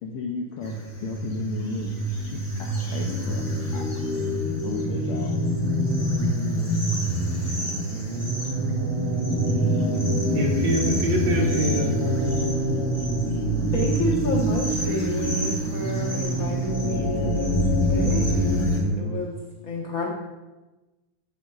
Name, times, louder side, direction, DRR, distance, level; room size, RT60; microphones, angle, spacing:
voice 1, 0.0-2.0 2.3-3.9 4.6-5.3, left 4 dB, 75° left, 1 dB, 1.3 m, -34 dB
sound 1, 0.6-18.8, left 1 dB, 20° left, 0.7 m, -26 dB
sound 2, 4.8-19.2, right 3 dB, 85° right, 2.0 m, -30 dB
voice 2, 10.3-11.9, right 2 dB, 70° right, 2 dB, 2.1 m, -25 dB
voice 3, 13.7-17.5 17.9-18.6 19.0-19.3 19.6-20.1, left 1 dB, 55° left, -4 dB, 0.9 m, -30 dB
8.2 x 7.0 x 3.9 m, 1.1 s
omnidirectional pair, 3.3 m